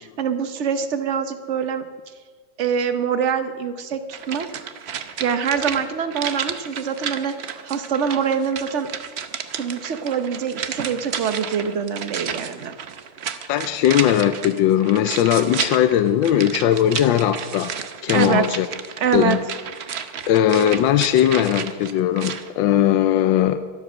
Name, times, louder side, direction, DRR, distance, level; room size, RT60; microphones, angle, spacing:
voice 1, 0.0-1.8 2.6-4.6 5.2-8.9 9.5-12.8 18.1-18.5 19.0-19.4, right 7 dB, 50° right, 9 dB, 1.0 m, -24 dB
sound 1, 4.1-22.5 22.8-22.9, right 7 dB, 65° right, 0.6 m, -32 dB
voice 2, 13.5-17.7 18.0-18.7 19.1-19.4 20.3-23.6, left 11 dB, 80° left, 10 dB, 1.3 m, -19 dB
23.0 x 8.0 x 6.2 m, 1.5 s
omnidirectional pair, 2.1 m